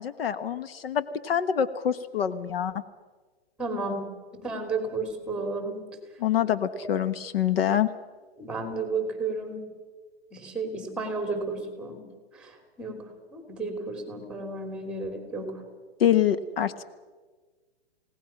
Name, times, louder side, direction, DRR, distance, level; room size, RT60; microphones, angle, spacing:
voice 1, 0.0-2.7 6.2-7.9 16.0-16.8, left 9 dB, 65° left, 12 dB, 1.3 m, -25 dB
voice 2, 3.6-5.9 8.4-9.7 10.3-12.0 12.3-12.5 12.8-13.1 13.3-15.6, right 3 dB, 5° right, 5 dB, 3.1 m, -32 dB
29.5 x 18.0 x 6.0 m, 1.4 s
hypercardioid pair, 150°, 32 cm